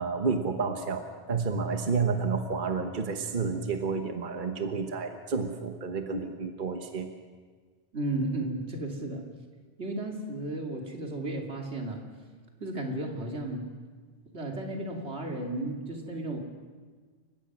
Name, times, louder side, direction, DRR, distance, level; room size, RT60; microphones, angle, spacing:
voice 1, 0.0-7.1, right 5 dB, 50° right, 5 dB, 1.3 m, -30 dB
voice 2, 7.9-9.2 9.8-12.0 12.6-13.7 14.3-16.4, right 2 dB, 80° right, 1 dB, 3.0 m, -34 dB
29.0 x 16.0 x 6.2 m, 1.5 s
omnidirectional pair, 1.1 m